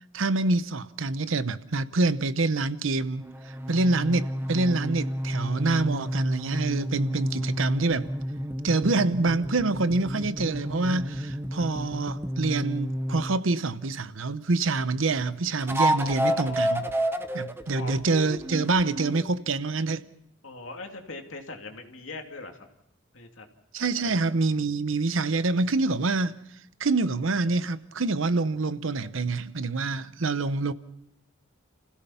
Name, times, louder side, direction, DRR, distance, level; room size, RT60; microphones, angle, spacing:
voice 1, 0.1-3.2 3.7-8.1 8.6-16.9 17.3-20.1 23.7-26.4 26.8-30.7, right 3 dB, 70° right, 0.8 m, -26 dB
sound 1, 3.2-13.4 15.6-19.3, equal, 10° right, 1.0 m, -30 dB
voice 2, 15.9-16.8 17.8-18.0 20.4-22.7 23.1-23.5 24.0-24.2, left 3 dB, 70° left, 2.7 m, -41 dB
29.5 x 16.5 x 5.7 m
head